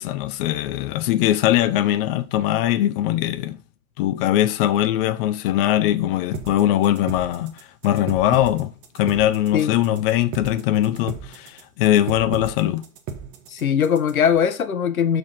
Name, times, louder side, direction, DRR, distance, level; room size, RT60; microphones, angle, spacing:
voice 1, 0.0-3.6 4.0-12.9, left 12 dB, 45° left, 0.7 m, -21 dB
sound 1, 6.3-14.3, right 6 dB, 35° right, 1.7 m, -35 dB
voice 2, 13.5-15.2, left 8 dB, 85° left, 1.2 m, -20 dB
7.2 x 4.8 x 5.9 m
hypercardioid pair, 115°, 41 cm